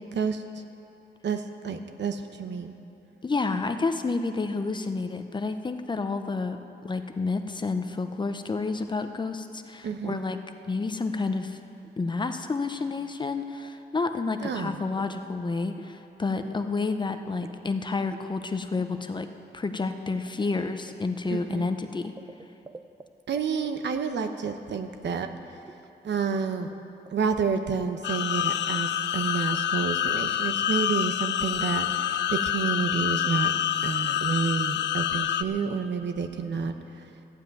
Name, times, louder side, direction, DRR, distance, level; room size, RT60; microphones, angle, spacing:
voice 1, 0.1-0.4 1.2-2.7 9.8-10.2 14.4-14.8 21.3-21.7 23.3-25.3 26.0-26.7 27.1-33.5 33.8-37.1, right 5 dB, 75° right, 7 dB, 0.9 m, -29 dB
voice 2, 3.2-6.6 6.8-10.4 10.6-11.6 12.0-22.1, left 3 dB, 25° left, 8 dB, 0.6 m, -30 dB
sound 1, 14.8-15.2 15.5-16.0 16.3-16.7 17.0-17.7 18.0-18.3 19.7-23.1 23.4-23.7 25.3-25.4 25.6-25.9 26.3-26.4 26.7-26.8 27.1-27.3 27.8-28.3, right 3 dB, 15° right, 0.4 m, -47 dB
sound 2, 28.0-35.4, left 10 dB, 80° left, 0.4 m, -27 dB
14.0 x 7.8 x 9.3 m, 2.8 s
wide cardioid pair, 160°, 18 cm